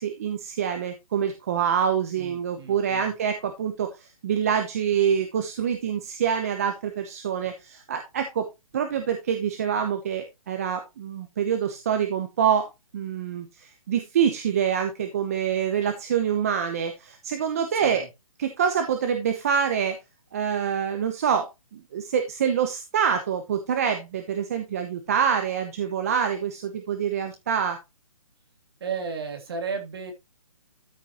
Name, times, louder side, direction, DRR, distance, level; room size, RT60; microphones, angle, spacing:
voice 1, 0.0-8.5 8.7-18.1 18.4-20.0 20.3-27.8, right 8 dB, 25° right, 6 dB, 0.9 m, -26 dB
voice 2, 2.2-3.1 17.8-18.1 28.8-30.1, right 5 dB, 45° right, 3 dB, 3.1 m, -34 dB
13.0 x 6.1 x 3.0 m, 0.22 s
hypercardioid pair, 175°, 18 cm